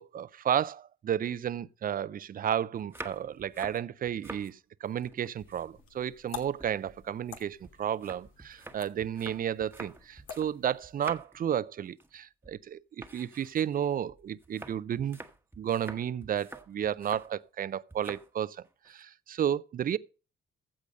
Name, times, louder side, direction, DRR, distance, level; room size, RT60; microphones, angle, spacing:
voice 1, 0.0-15.2 15.6-20.0, right 9 dB, 45° right, 0.5 m, -32 dB
sound 1, 2.8-4.5 4.9-6.0 6.3-10.6 10.8-11.5 11.8-12.2 12.4-12.6 13.0-17.3 17.9-18.3 18.6-19.0, right 2 dB, 10° right, 1.2 m, -47 dB
sound 2, 5.2-11.0, left 8 dB, 90° left, 1.8 m, -49 dB
15.0 x 5.1 x 5.2 m
cardioid pair, 90°, 20 cm